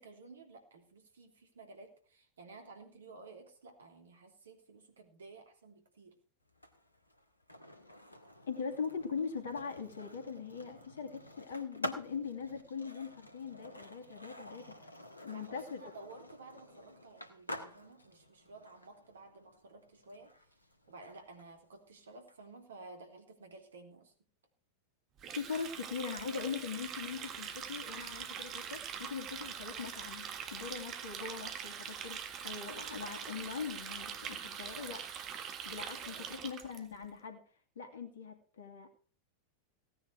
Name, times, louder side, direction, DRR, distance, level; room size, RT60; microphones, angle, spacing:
voice 1, 0.0-6.1 15.2-20.3 20.9-24.1 36.0-36.3, right 3 dB, 65° right, 4 dB, 3.1 m, -54 dB
Skateboard, 6.5-22.4, left 1 dB, 85° left, 1.5 m, -49 dB
voice 2, 8.5-15.8 25.4-35.1 35.6-37.4 37.8-38.9, left 6 dB, 65° left, 5 dB, 2.7 m, -41 dB
Water tap faucet, 25.2-36.8, right 8 dB, 35° right, 1.7 m, -43 dB
17.0 x 9.8 x 4.7 m, 0.43 s
figure-of-eight pair, 90°, 0 cm